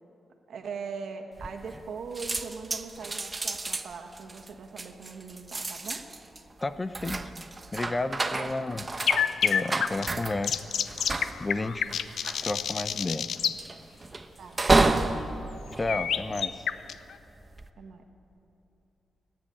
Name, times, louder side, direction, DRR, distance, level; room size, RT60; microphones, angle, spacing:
voice 1, 0.5-6.1 8.3-8.5 14.4-15.3 17.8-18.0, right 5 dB, 75° right, 4 dB, 1.7 m, -40 dB
sound 1, 1.4-1.9 2.1-16.7 17.3-17.7, right 2 dB, 25° right, 1.0 m, -31 dB
voice 2, 6.6-7.2 7.7-8.9 9.4-10.6 11.4-11.8 12.4-13.3 15.7-16.7, left 2 dB, 25° left, 12 dB, 0.7 m, -31 dB
sound 2, 9.0-13.6 15.9-17.1, left 8 dB, 80° left, 0.6 m, -28 dB
28.5 x 10.5 x 8.7 m, 3.0 s
cardioid pair, 90°, 0 cm